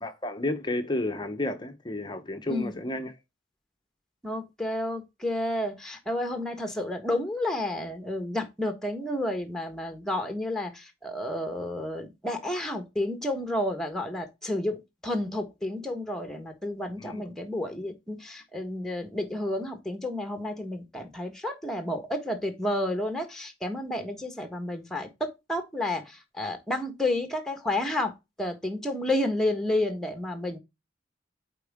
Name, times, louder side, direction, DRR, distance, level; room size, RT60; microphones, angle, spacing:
voice 1, 0.0-3.1 17.0-17.2, left 1 dB, 25° left, 0.8 m, -31 dB
voice 2, 2.5-2.8 4.2-14.8 15.0-30.6, left 1 dB, 5° left, 1.4 m, -31 dB
8.1 x 4.5 x 3.6 m
head